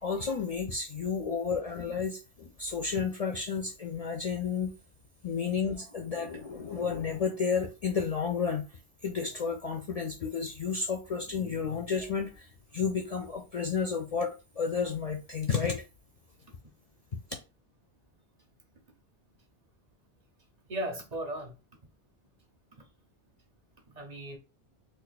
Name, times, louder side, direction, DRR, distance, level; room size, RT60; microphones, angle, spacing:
voice 1, 0.0-4.7 5.2-8.7 9.0-15.8, left 6 dB, 50° left, 0.5 m, -32 dB
voice 2, 20.7-21.6 22.7-22.9 23.9-24.4, right 1 dB, 45° right, 0.8 m, -36 dB
2.5 x 2.5 x 3.9 m
omnidirectional pair, 1.1 m